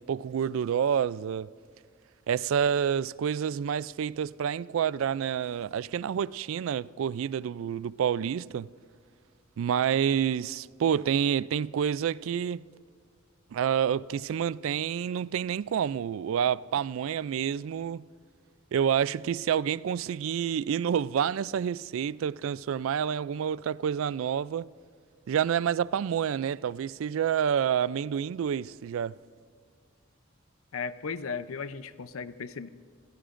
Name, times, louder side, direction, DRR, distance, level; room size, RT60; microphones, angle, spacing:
voice 1, 0.0-1.5 2.3-8.7 9.6-12.6 13.5-18.0 18.7-24.7 25.3-29.1, right 8 dB, 70° right, 0.3 m, -28 dB
voice 2, 30.7-32.7, left 5 dB, 80° left, 0.6 m, -36 dB
26.5 x 16.5 x 2.5 m
head